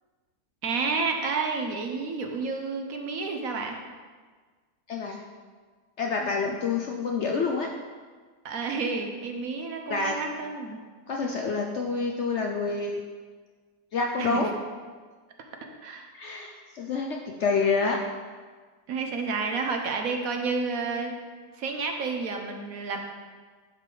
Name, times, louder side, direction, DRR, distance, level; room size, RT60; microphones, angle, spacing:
voice 1, 0.6-3.8 8.4-10.8 14.2-14.5 15.8-16.1 18.9-21.2 21.5-23.0, right 4 dB, 65° right, 3 dB, 1.1 m, -30 dB
voice 2, 4.9-5.2 6.0-7.7 9.9-10.2 11.1-13.0 13.9-14.5 16.1-18.0, left 4 dB, 60° left, 1 dB, 0.7 m, -27 dB
10.5 x 4.9 x 3.8 m, 1.5 s
omnidirectional pair, 1.7 m